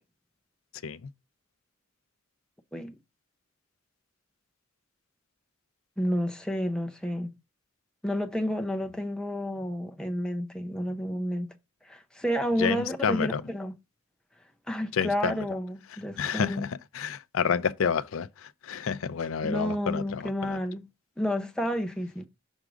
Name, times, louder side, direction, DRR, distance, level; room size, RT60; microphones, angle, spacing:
voice 1, 6.0-7.3 8.0-11.5 11.8-13.7 14.7-16.7 19.4-20.8 21.2-22.3, equal, 5° left, 0.7 m, -30 dB
voice 2, 12.6-13.4 14.9-15.5 16.2-20.6, left 6 dB, 80° left, 0.5 m, -29 dB
6.1 x 3.6 x 5.0 m
head